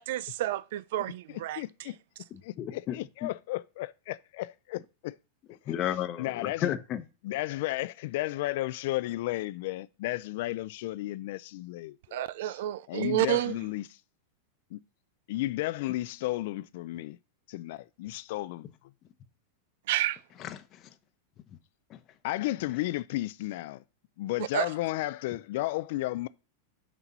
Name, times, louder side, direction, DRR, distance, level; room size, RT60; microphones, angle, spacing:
voice 1, 0.0-1.6 12.1-13.5 19.9-20.2 24.5-24.7, right 14 dB, 65° right, 0.4 m, -29 dB
voice 2, 1.3-2.0 2.4-5.2 5.7-5.8 6.2-6.7 7.2-12.6 12.9-14.0 14.7-14.8 15.3-17.2 17.5-18.7 22.2-23.8 24.2-26.3, left 17 dB, 60° left, 0.4 m, -33 dB
voice 3, 2.6-3.0 3.2-3.3 5.7-7.0 20.4-20.9 21.9-22.0, left 11 dB, 35° left, 0.9 m, -33 dB
6.1 x 4.5 x 5.4 m
supercardioid pair, 140°, 0 cm